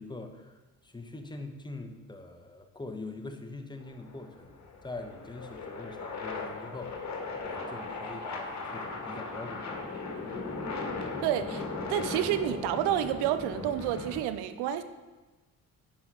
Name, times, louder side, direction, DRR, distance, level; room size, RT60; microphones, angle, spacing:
voice 1, 0.0-4.5 4.8-7.1 7.5-10.3, left 2 dB, 10° left, 5 dB, 1.3 m, -43 dB
sound 1, 3.8-14.2, left 3 dB, 40° left, 1.9 m, -38 dB
voice 2, 11.2-11.6 11.9-14.8, right 11 dB, 60° right, 11 dB, 0.8 m, -29 dB
10.5 x 5.6 x 4.6 m, 1.2 s
figure-of-eight pair, 45°, 44 cm